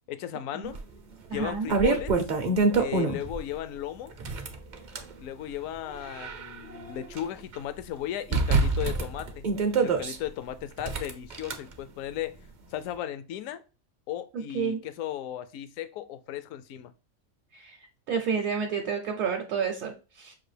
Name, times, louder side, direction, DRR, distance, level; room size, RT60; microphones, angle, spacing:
voice 1, 0.1-0.8 1.3-2.2 2.8-4.1 5.2-9.5 9.8-12.4 12.7-13.6 14.1-16.9, left 11 dB, 75° left, 0.9 m, -36 dB
sound 1, 0.7-0.8 1.3-3.4 4.1-5.1 5.8-7.2 7.5-7.6 8.3-10.2 10.8-11.5, right 4 dB, 50° right, 0.6 m, -26 dB
voice 2, 1.3-1.7 14.3-14.8 17.5-17.8 18.1-20.3, right 6 dB, 70° right, 1.0 m, -30 dB
6.0 x 2.5 x 3.2 m
omnidirectional pair, 1.5 m